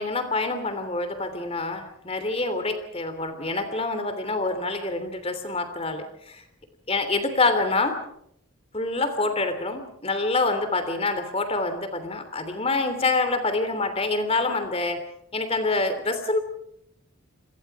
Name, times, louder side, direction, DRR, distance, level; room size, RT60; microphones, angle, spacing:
voice 1, 0.0-6.4 6.9-8.0 8.7-15.0 15.3-16.4, left 3 dB, 30° left, 9 dB, 3.1 m, -26 dB
29.5 x 22.5 x 4.8 m, 0.73 s
head